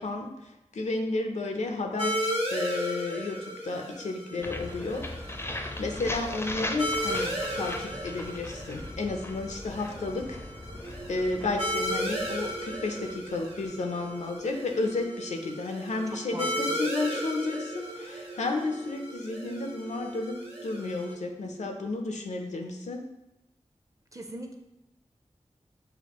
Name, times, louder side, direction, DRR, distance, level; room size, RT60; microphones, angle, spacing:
voice 1, 0.0-3.4 3.6-5.4 5.8-10.4 11.1-23.0, left 3 dB, 90° left, 4 dB, 0.5 m, -32 dB
sound 1, 2.0-21.1, equal, 55° right, 1.2 m, -35 dB
sound 2, 4.4-14.2, left 1 dB, 20° left, 0.4 m, -39 dB
sound 3, 10.8-21.6, right 3 dB, 75° right, 0.8 m, -45 dB
voice 2, 16.3-16.8 24.1-24.5, right 1 dB, 30° right, 3 dB, 0.5 m, -40 dB
6.2 x 2.3 x 2.9 m, 0.91 s
wide cardioid pair, 65°, 12 cm